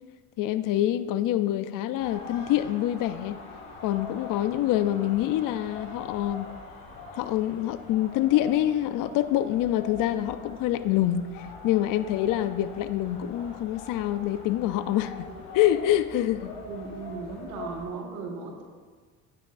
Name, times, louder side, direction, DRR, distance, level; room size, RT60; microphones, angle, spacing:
voice 1, 0.4-3.4 3.8-6.5 7.1-15.3 15.5-16.5, left 13 dB, 55° left, 12 dB, 0.5 m, -26 dB
sound 1, 2.0-17.8, left 3 dB, 80° left, 2.6 m, -43 dB
voice 2, 16.6-18.6, right 4 dB, 80° right, 1 dB, 1.6 m, -37 dB
9.5 x 9.1 x 2.6 m, 1.5 s
supercardioid pair, 80°, 40 cm